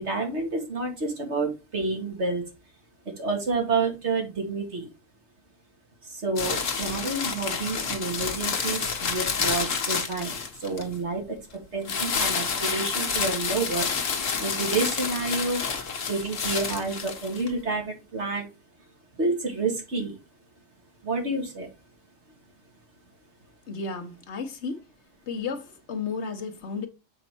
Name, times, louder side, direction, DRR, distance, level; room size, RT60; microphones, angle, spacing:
voice 1, 0.0-2.4 3.2-4.9 6.1-11.4 11.7-13.9 14.4-15.6 16.1-18.5 19.2-20.2 21.0-21.7, right 3 dB, 60° right, 2.3 m, -29 dB
sound 1, 6.4-10.9 11.8-17.5, left 5 dB, 80° left, 1.5 m, -29 dB
voice 2, 23.7-24.8 25.3-26.9, left 5 dB, 60° left, 1.3 m, -33 dB
7.1 x 4.2 x 4.4 m
omnidirectional pair, 1.3 m